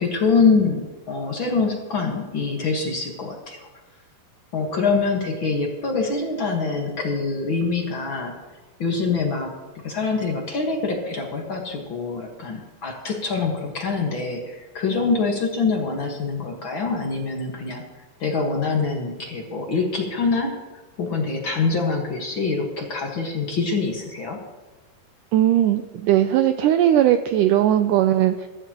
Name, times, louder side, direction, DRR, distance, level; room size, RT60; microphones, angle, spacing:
voice 1, 0.0-3.7 4.5-8.3 8.8-20.6 21.0-24.4, left 4 dB, 50° left, 1 dB, 1.6 m, -25 dB
voice 2, 25.3-28.5, right 11 dB, 80° right, 8 dB, 1.9 m, -18 dB
22.0 x 12.5 x 3.0 m, 1.3 s
omnidirectional pair, 4.1 m